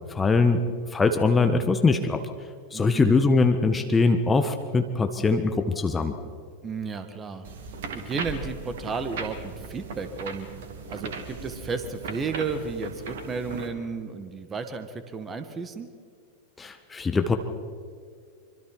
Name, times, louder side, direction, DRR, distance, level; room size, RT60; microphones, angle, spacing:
voice 1, 0.1-0.6 0.9-2.3 2.7-6.1 16.6-17.4, left 4 dB, 15° left, 7 dB, 1.4 m, -22 dB
voice 2, 2.7-3.2 6.6-7.5 7.9-10.5 10.9-15.9, right 4 dB, 20° right, 9 dB, 1.9 m, -33 dB
sound 1, 7.4-13.7, right 5 dB, 55° right, 2.6 m, -37 dB
25.5 x 25.0 x 4.7 m, 2.1 s
figure-of-eight pair, 90°, 0 cm